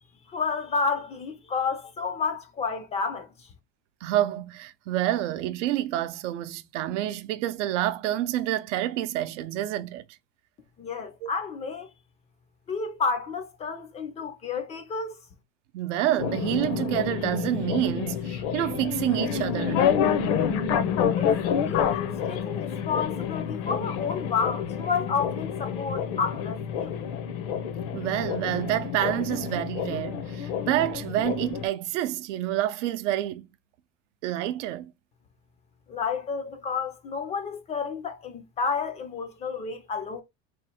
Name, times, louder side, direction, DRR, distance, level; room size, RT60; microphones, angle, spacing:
voice 1, 0.3-3.5 10.8-11.9 12.7-15.2 21.2-27.0 35.9-40.2, left 5 dB, 20° left, 0.4 m, -30 dB
voice 2, 4.0-10.1 11.2-11.3 15.7-19.9 27.9-33.5 34.2-34.9, right 13 dB, 85° right, 0.6 m, -28 dB
sound 1, 16.2-31.7, left 7 dB, 70° left, 0.8 m, -28 dB
3.1 x 2.4 x 4.2 m
supercardioid pair, 150°, 36 cm